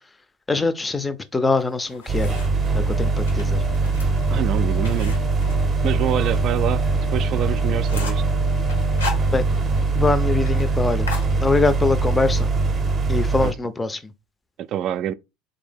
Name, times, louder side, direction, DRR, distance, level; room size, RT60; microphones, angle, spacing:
voice 1, 0.5-2.4 2.7-3.6 9.3-9.4 10.0-11.1 11.4-12.5 13.1-14.0, left 3 dB, 15° left, 0.5 m, -23 dB
sound 1, 1.6-2.7 3.2-6.4 6.7-6.8 7.2-7.3 7.6-8.3 8.7-9.8 10.1-10.2 10.5-10.7 11.1-11.9, left 4 dB, 90° left, 1.1 m, -35 dB
sound 2, 2.0-10.1 10.4-10.5, left 12 dB, 65° left, 0.8 m, -41 dB
sound 3, 2.1-13.5, right 3 dB, 30° right, 0.7 m, -22 dB
voice 2, 4.3-5.2 5.8-6.9 7.1-8.2 13.4-13.5 14.7-15.1, right 11 dB, 50° right, 0.3 m, -25 dB
3.3 x 2.7 x 3.5 m
hypercardioid pair, 70°, 0 cm